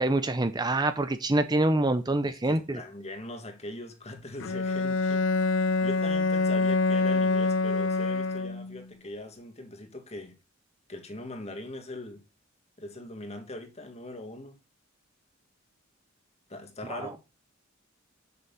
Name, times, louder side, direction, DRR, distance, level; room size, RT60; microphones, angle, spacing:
voice 1, 0.0-2.8 16.9-17.1, right 2 dB, 20° right, 0.7 m, -26 dB
voice 2, 2.4-5.2 5.6-10.4 10.9-12.2 12.8-14.6 16.5-17.2, left 2 dB, 35° left, 1.9 m, -41 dB
Bowed string instrument, 4.4-8.8, left 3 dB, 70° left, 0.5 m, -26 dB
7.0 x 6.9 x 7.1 m
head